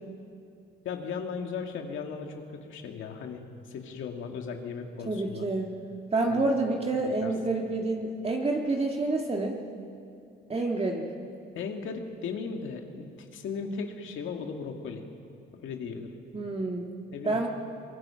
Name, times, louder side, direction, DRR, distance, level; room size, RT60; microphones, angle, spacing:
voice 1, 0.8-5.5 6.3-6.5 7.0-7.3 11.6-13.1 13.3-15.0 15.5-16.1 17.1-17.4, left 5 dB, 80° left, 3 dB, 2.2 m, -37 dB
voice 2, 5.1-5.7 6.1-9.6 10.5-11.1 16.3-16.9 17.2-17.5, right 2 dB, 30° right, 0 dB, 1.9 m, -28 dB
23.0 x 21.5 x 5.8 m, 2.5 s
cardioid pair, 90°, 20 cm